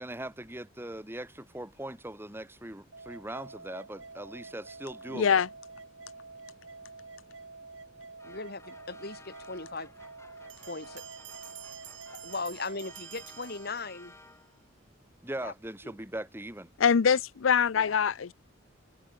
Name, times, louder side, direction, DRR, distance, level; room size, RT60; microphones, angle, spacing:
voice 1, 0.0-5.4 15.2-16.7, right 1 dB, 10° right, 2.1 m, -40 dB
sound 1, 2.9-12.9, right 3 dB, 85° right, 7.3 m, -48 dB
voice 2, 5.1-5.5 16.8-18.3, left 6 dB, 90° left, 0.5 m, -24 dB
voice 3, 8.2-9.9 10.6-11.0 12.2-14.1 15.4-15.5 17.7-18.0, left 3 dB, 55° left, 3.3 m, -38 dB
sound 2, 8.2-14.7, left 2 dB, 15° left, 6.2 m, -56 dB
sound 3, 10.5-14.3, right 14 dB, 65° right, 2.4 m, -49 dB
head